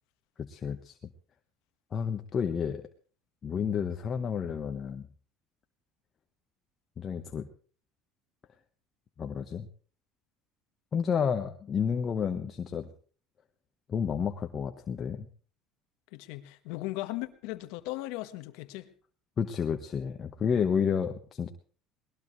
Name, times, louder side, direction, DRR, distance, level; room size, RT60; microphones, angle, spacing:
voice 1, 0.4-1.0 1.9-2.8 3.4-5.1 7.0-7.5 9.2-9.7 10.9-12.9 13.9-15.3 19.4-21.5, left 7 dB, 40° left, 1.3 m, -30 dB
voice 2, 16.1-18.9, left 18 dB, 75° left, 1.4 m, -37 dB
21.0 x 19.5 x 3.2 m
supercardioid pair, 90°, 0 cm